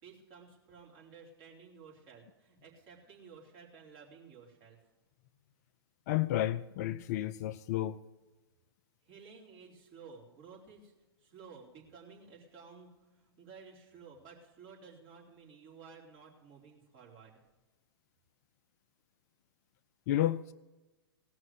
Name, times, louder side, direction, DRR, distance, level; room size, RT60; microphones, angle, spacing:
voice 1, 0.0-4.8 9.0-10.9 11.2-17.4, right 5 dB, 40° right, 4.0 m, -54 dB
voice 2, 6.1-8.0 20.1-20.5, left 13 dB, 40° left, 0.4 m, -31 dB
18.0 x 6.2 x 7.8 m
figure-of-eight pair, 110°, 13 cm